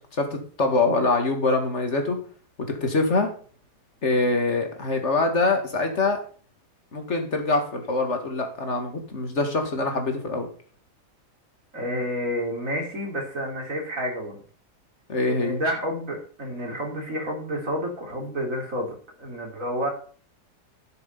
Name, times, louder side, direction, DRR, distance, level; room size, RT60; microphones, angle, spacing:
voice 1, 0.0-2.2 2.7-3.3 4.0-6.2 6.9-10.5 15.1-15.6, left 3 dB, 45° left, 5 dB, 2.3 m, -24 dB
voice 2, 11.7-14.4 15.2-19.9, equal, 50° right, 1 dB, 3.7 m, -30 dB
11.0 x 7.3 x 5.5 m, 0.44 s
omnidirectional pair, 1.8 m